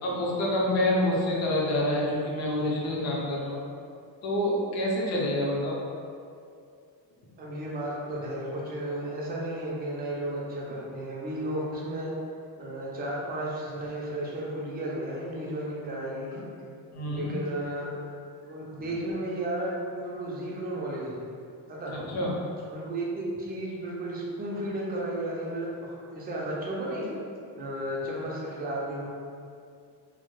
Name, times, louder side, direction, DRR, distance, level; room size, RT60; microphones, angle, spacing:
voice 1, 0.0-3.6 4.2-5.8 16.9-17.3 21.9-22.3, left 1 dB, 45° left, -4 dB, 0.5 m, -27 dB
voice 2, 7.4-12.1 12.6-16.4 17.1-17.9 18.4-21.3 21.7-22.0 22.7-27.1 27.6-29.1, right 1 dB, 25° right, -4 dB, 0.3 m, -33 dB
2.1 x 2.1 x 2.9 m, 2.3 s
cardioid pair, 150°, 38 cm